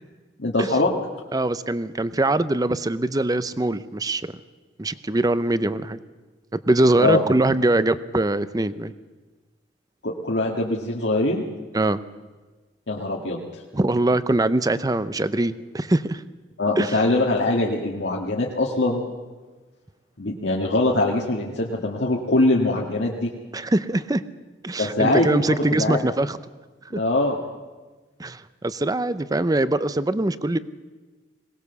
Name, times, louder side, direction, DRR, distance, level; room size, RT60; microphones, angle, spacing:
voice 1, 0.4-0.9 7.0-7.2 10.0-11.4 12.9-13.6 16.6-19.0 20.2-23.3 24.8-26.0 26.9-27.4, left 2 dB, 80° left, -2 dB, 1.7 m, -22 dB
voice 2, 1.3-4.3 4.8-6.0 6.5-8.9 11.7-12.0 13.7-16.2 16.8-17.0 23.5-24.2 24.6-26.4 26.9-27.0 28.2-30.6, right 2 dB, 20° right, 15 dB, 0.6 m, -22 dB
21.0 x 18.5 x 6.9 m, 1.3 s
head